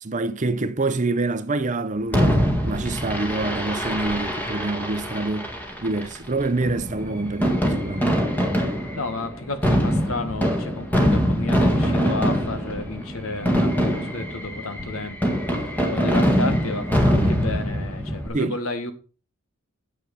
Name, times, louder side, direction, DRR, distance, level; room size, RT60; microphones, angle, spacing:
voice 1, 0.0-5.5 5.8-8.1 18.3-18.6, right 2 dB, 35° right, 0.7 m, -26 dB
Fireworks, 2.1-18.3, equal, 10° left, 1.7 m, -23 dB
voice 2, 8.9-15.6 15.9-18.9, left 2 dB, 70° left, 1.6 m, -32 dB
9.4 x 7.7 x 5.3 m
head